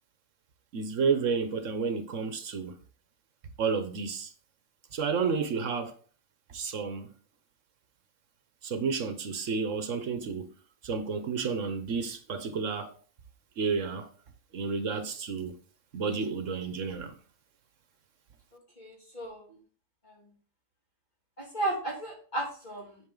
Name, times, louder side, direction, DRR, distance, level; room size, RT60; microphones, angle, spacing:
voice 1, 0.7-2.8 3.6-4.3 4.9-6.0 6.5-7.1 8.6-10.5 10.8-12.9 13.6-14.1 14.5-15.6 15.9-17.1, right 5 dB, 70° right, 1.3 m, -31 dB
voice 2, 18.8-19.4 20.0-20.2 21.4-23.0, right 2 dB, 35° left, 3.1 m, -34 dB
8.9 x 6.0 x 3.8 m
omnidirectional pair, 1.3 m